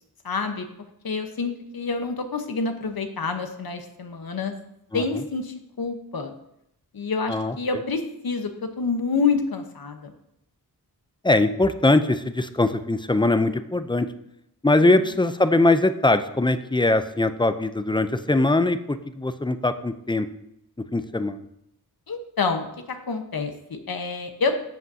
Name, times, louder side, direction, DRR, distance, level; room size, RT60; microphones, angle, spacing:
voice 1, 0.2-0.6 1.0-4.5 4.9-6.3 6.9-10.1 22.1-24.6, left 4 dB, 60° left, 6 dB, 1.1 m, -27 dB
voice 2, 11.2-14.1 14.6-20.3 20.8-21.4, left 2 dB, 10° left, 11 dB, 0.5 m, -21 dB
13.5 x 7.8 x 2.8 m, 0.80 s
wide cardioid pair, 80°, 39 cm